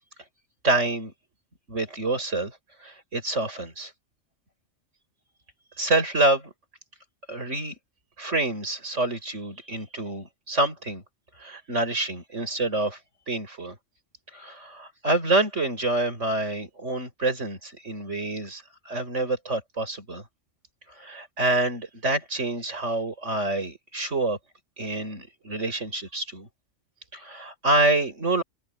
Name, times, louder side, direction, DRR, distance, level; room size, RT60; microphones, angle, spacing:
voice 1, 0.6-1.1 1.7-3.9 5.8-6.5 7.3-7.7 8.2-11.0 11.4-13.0 13.3-13.8 14.3-20.2 21.0-24.4 24.8-26.5 27.1-28.4, right 2 dB, 70° right, 6.3 m, -27 dB
omnidirectional pair, 1.3 m